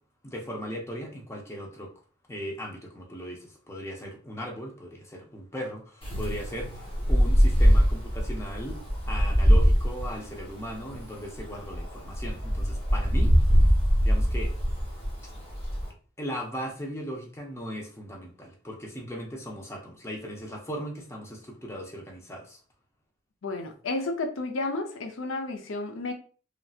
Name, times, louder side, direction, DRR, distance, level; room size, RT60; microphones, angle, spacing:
voice 1, 0.2-1.9 2.3-8.8 9.1-13.6 14.0-14.5 15.2-15.3 16.2-22.6, equal, 15° left, 0 dB, 0.6 m, -38 dB
Wind, 6.0-15.9, equal, 30° left, 1.3 m, -23 dB
voice 2, 23.4-26.1, left 2 dB, 90° left, 4 dB, 0.5 m, -32 dB
3.2 x 2.6 x 2.4 m, 0.40 s
head